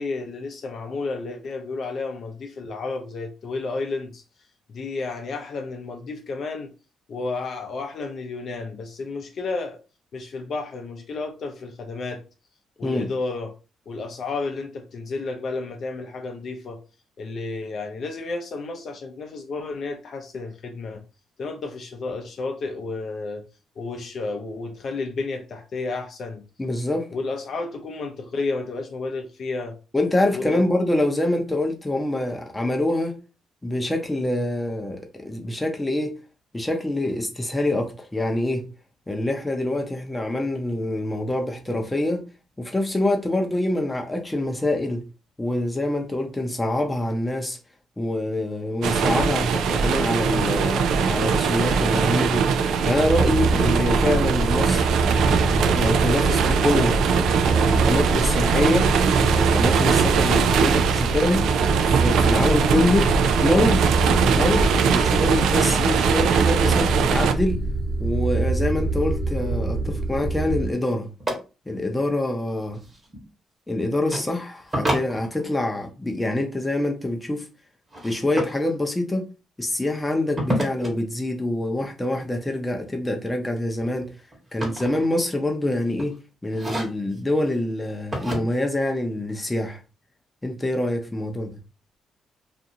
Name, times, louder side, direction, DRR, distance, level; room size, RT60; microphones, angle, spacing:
voice 1, 0.0-4.2 4.7-6.7 7.1-9.8 10.1-12.2 12.8-13.5 13.9-16.8 17.2-21.0 21.4-23.4 23.8-26.4 27.1-29.8 30.3-30.6, left 3 dB, 55° left, 0.5 m, -31 dB
voice 2, 26.6-27.1 29.9-33.2 33.6-36.1 36.5-38.6 39.1-42.3 42.6-45.0 45.4-47.6 48.0-52.4 52.8-55.0 55.7-57.0 57.4-61.4 61.9-63.1 63.4-63.8 64.3-67.6 68.0-71.1 71.7-72.8 73.7-77.5 78.0-79.3 79.6-84.1 84.5-86.2 86.4-89.8 90.4-91.6, left 1 dB, 15° left, 0.7 m, -25 dB
sound 1, 48.8-67.3, right 6 dB, 80° right, 0.3 m, -21 dB
sound 2, 53.0-70.7, right 3 dB, 45° right, 1.2 m, -25 dB
sound 3, 71.2-71.3 72.7-73.2 74.1-74.3 74.7-75.7 77.9-78.6 80.4-80.9 82.8-83.2 83.6-85.5 85.9-86.1 86.5-87.2 88.1-88.4, right 1 dB, 20° right, 1.1 m, -29 dB
2.5 x 2.5 x 2.8 m
cardioid pair, 90°, 0 cm